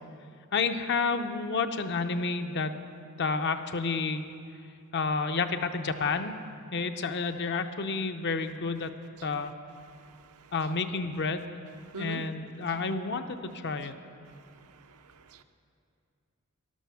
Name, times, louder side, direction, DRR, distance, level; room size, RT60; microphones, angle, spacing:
voice 1, 0.5-2.8 3.2-4.3 4.9-6.3 6.7-8.9 9.2-9.5 10.5-11.5 12.0-14.0, left 4 dB, 50° left, 8 dB, 0.6 m, -30 dB
voice 2, 9.9-10.5 11.9-12.2 14.3-15.4, right 2 dB, 80° right, 8 dB, 0.7 m, -45 dB
13.5 x 11.5 x 5.7 m, 2.4 s
head